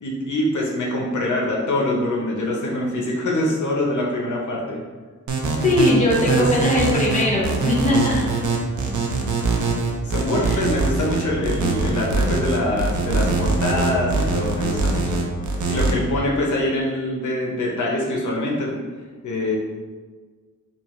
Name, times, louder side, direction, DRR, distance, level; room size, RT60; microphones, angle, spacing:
voice 1, 0.0-4.8 6.1-6.4 10.0-15.2 15.6-18.8 19.2-19.6, left 1 dB, 70° left, -2 dB, 0.7 m, -24 dB
sound 1, 5.3-15.9, right 3 dB, 70° right, 0.6 m, -22 dB
voice 2, 5.6-8.4 10.4-10.6, left 1 dB, 25° left, -5 dB, 1.0 m, -20 dB
5.3 x 2.3 x 3.0 m, 1.5 s
wide cardioid pair, 135°, 31 cm